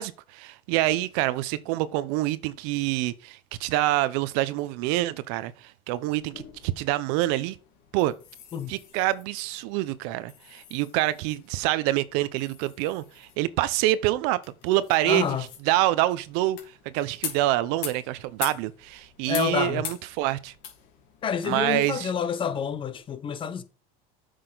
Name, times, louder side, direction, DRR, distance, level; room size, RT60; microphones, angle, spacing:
voice 1, 0.0-7.6 7.9-8.1 8.7-15.2 15.7-16.6 16.8-20.5 21.4-22.1, right 16 dB, 65° right, 0.7 m, -26 dB
sound 1, 6.1-23.0, left 9 dB, 60° left, 2.9 m, -44 dB
voice 2, 15.0-15.5 19.3-19.8 21.2-23.6, left 8 dB, 30° left, 0.9 m, -28 dB
7.8 x 6.5 x 3.9 m
supercardioid pair, 130°, 18 cm